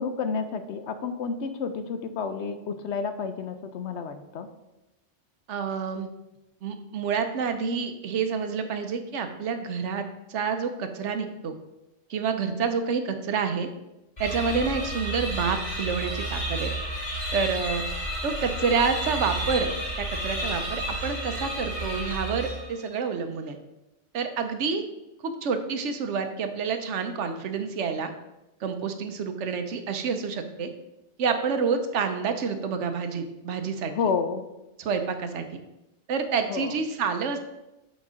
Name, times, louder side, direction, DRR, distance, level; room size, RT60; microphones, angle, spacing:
voice 1, 0.0-4.5 33.9-34.4 36.5-36.8, left 5 dB, 75° left, 9 dB, 0.9 m, -30 dB
voice 2, 5.5-6.1 6.6-11.5 12.1-13.7 14.2-16.7 17.3-17.8 18.2-19.7 20.0-23.6 24.1-24.8 25.2-28.1 28.6-30.7 31.2-33.9 34.8-35.5 36.1-37.4, right 5 dB, 80° right, 7 dB, 1.1 m, -28 dB
sound 1, 14.2-22.9, right 1 dB, 40° left, 2.2 m, -31 dB
7.5 x 4.0 x 4.9 m, 0.95 s
omnidirectional pair, 1.2 m